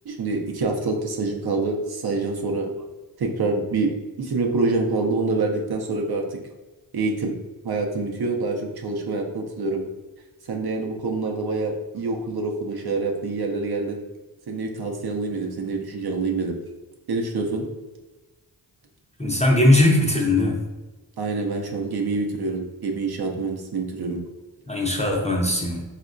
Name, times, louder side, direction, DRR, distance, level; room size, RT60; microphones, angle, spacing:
voice 1, 0.1-2.7 3.2-3.9 4.2-6.4 6.9-7.3 7.6-9.8 10.5-14.0 14.5-16.6 17.1-17.7 21.2-24.2, right 3 dB, 55° right, 1 dB, 0.5 m, -26 dB
voice 2, 19.2-20.6 24.7-25.8, left 1 dB, 15° left, -1 dB, 0.5 m, -19 dB
3.5 x 2.1 x 2.4 m, 1.2 s
cardioid pair, 40°, 48 cm